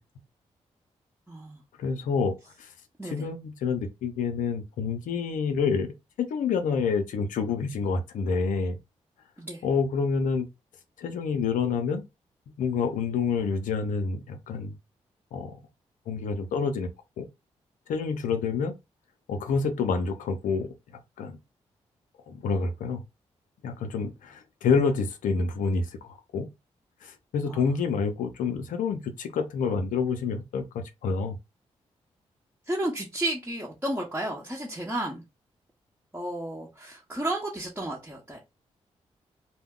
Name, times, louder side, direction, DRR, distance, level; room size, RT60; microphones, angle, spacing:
voice 1, 1.3-1.6 3.0-3.2 9.4-9.6 27.5-27.6 32.7-35.2 36.1-38.5, right 1 dB, 15° right, 0.9 m, -32 dB
voice 2, 1.8-2.7 3.0-5.9 6.3-8.8 9.6-10.5 11.0-12.0 12.6-14.7 15.3-15.6 16.1-16.9 17.2-17.3 17.9-18.7 19.3-20.7 21.2-21.4 22.3-23.0 23.6-26.5 27.0-31.4, left 5 dB, 80° left, 0.5 m, -28 dB
2.2 x 2.1 x 3.6 m
supercardioid pair, 45°, 13 cm